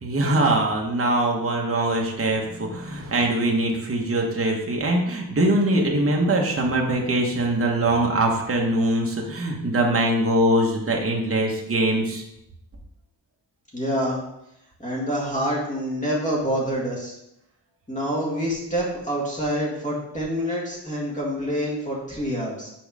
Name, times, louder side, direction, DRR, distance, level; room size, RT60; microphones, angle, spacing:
voice 1, 0.0-12.2, right 1 dB, 30° right, -1 dB, 1.2 m, -22 dB
voice 2, 13.7-14.2 14.8-17.2 17.9-22.7, equal, 15° left, -4 dB, 1.9 m, -27 dB
6.3 x 4.8 x 4.8 m, 0.83 s
wide cardioid pair, 165°, 42 cm